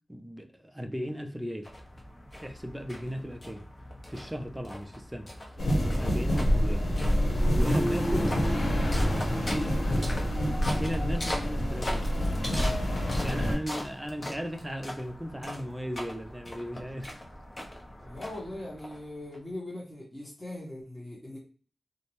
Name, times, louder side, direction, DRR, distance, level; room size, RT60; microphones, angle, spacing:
voice 1, 0.1-1.7 2.4-3.6 4.1-5.3 6.0-6.8 7.6-8.5 9.4-9.7 10.7-12.1 13.0-17.2, equal, 10° right, 5 dB, 0.4 m, -36 dB
sound 1, 1.6-19.4, left 1 dB, 35° left, 0.7 m, -41 dB
sound 2, 5.6-13.6, equal, 85° left, 0.9 m, -27 dB
voice 2, 8.1-8.9 9.2-10.7 18.0-21.4, left 1 dB, 15° left, -6 dB, 1.0 m, -42 dB
2.6 x 2.1 x 2.9 m, 0.41 s
wide cardioid pair, 85°, 0 cm